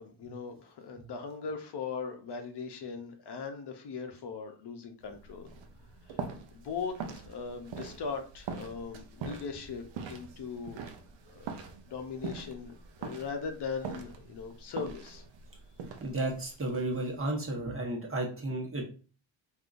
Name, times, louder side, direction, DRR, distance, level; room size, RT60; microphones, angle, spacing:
voice 1, 0.0-5.5 6.1-6.2 6.5-9.8 10.1-10.8 11.3-15.2, left 5 dB, 55° left, 5 dB, 0.7 m, -39 dB
sound 1, 5.0-17.2, right 5 dB, 65° right, 0.6 m, -43 dB
voice 2, 16.0-18.8, right 2 dB, 25° right, -1 dB, 1.1 m, -33 dB
3.5 x 2.6 x 2.5 m, 0.38 s
cardioid pair, 80°, 48 cm